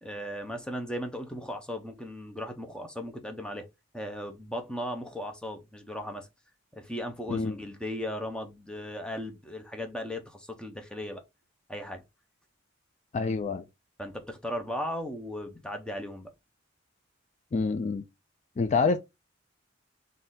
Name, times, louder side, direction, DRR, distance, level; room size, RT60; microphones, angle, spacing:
voice 1, 0.0-3.6 3.9-6.3 6.7-11.2 11.7-12.0 14.0-16.3, equal, 5° left, 0.7 m, -37 dB
voice 2, 13.1-13.6 17.5-18.0 18.6-19.0, left 4 dB, 35° left, 0.3 m, -26 dB
4.2 x 2.6 x 3.7 m
head